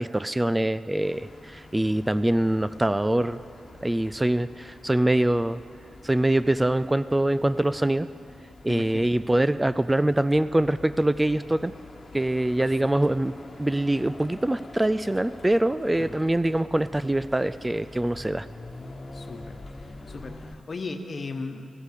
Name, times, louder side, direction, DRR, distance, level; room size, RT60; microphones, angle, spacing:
voice 1, 0.0-3.4 3.8-5.6 6.0-8.1 8.6-11.7 12.1-13.3 13.6-18.5, right 1 dB, 15° right, 14 dB, 0.3 m, -24 dB
sound 1, 1.0-20.6, left 2 dB, 35° left, 1.4 m, -46 dB
voice 2, 8.7-9.1 12.6-12.7 16.0-16.2 19.1-19.5 19.8-21.7, left 3 dB, 50° left, 6 dB, 1.2 m, -37 dB
15.0 x 8.0 x 8.4 m, 2.4 s
cardioid pair, 55°, 0 cm